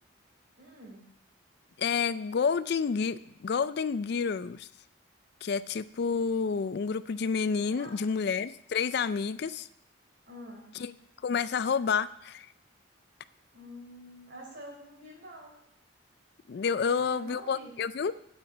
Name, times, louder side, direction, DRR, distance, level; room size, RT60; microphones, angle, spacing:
voice 1, 0.6-1.1 7.6-8.2 10.3-10.8 13.5-15.6 16.7-17.7, equal, 55° right, 0 dB, 3.8 m, -47 dB
voice 2, 1.8-4.7 5.4-9.7 10.7-10.9 11.2-12.5 16.5-18.2, left 5 dB, 50° left, 16 dB, 0.4 m, -29 dB
9.0 x 8.1 x 8.4 m, 0.78 s
head